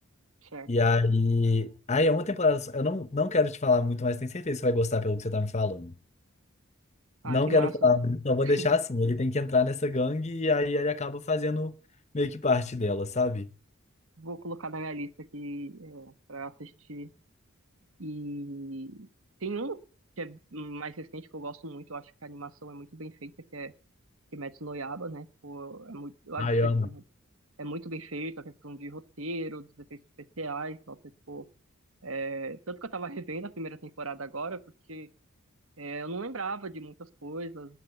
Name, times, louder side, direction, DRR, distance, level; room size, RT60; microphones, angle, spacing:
voice 1, 0.7-5.9 7.2-11.7 12.1-13.5 26.4-26.9, left 3 dB, 30° left, 0.9 m, -26 dB
voice 2, 7.2-7.9 8.4-8.7 14.2-17.1 18.0-19.1 19.4-19.8 20.2-23.7 24.3-27.0 27.6-31.0 31.3-31.5 32.0-34.6 34.9-35.1 35.8-37.8, right 2 dB, 70° right, 1.2 m, -38 dB
20.0 x 7.8 x 7.9 m
head